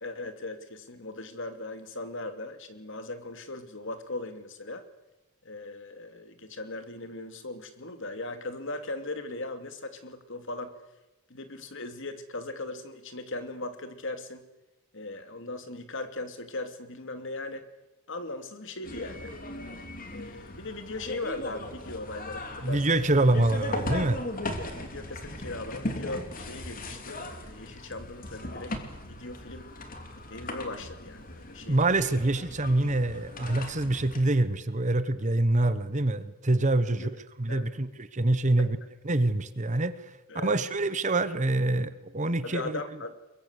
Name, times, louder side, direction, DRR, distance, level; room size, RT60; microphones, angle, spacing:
voice 1, 0.0-4.8 5.4-10.8 11.3-14.4 14.9-17.7 18.1-19.3 20.1-23.0 24.8-28.8 29.1-29.7 30.3-31.8 33.5-33.6 36.9-37.1 37.5-37.8 38.6-38.7 40.3-40.6 42.4-43.2, left 2 dB, 60° left, 8 dB, 2.8 m, -38 dB
sound 1, 18.8-34.2, left 1 dB, 40° left, 3.2 m, -38 dB
voice 2, 22.6-24.2 31.6-37.1 37.4-38.8 39.0-40.0 40.3-42.8, right 2 dB, 35° right, 13 dB, 1.2 m, -25 dB
23.5 x 22.5 x 8.3 m, 1.0 s
head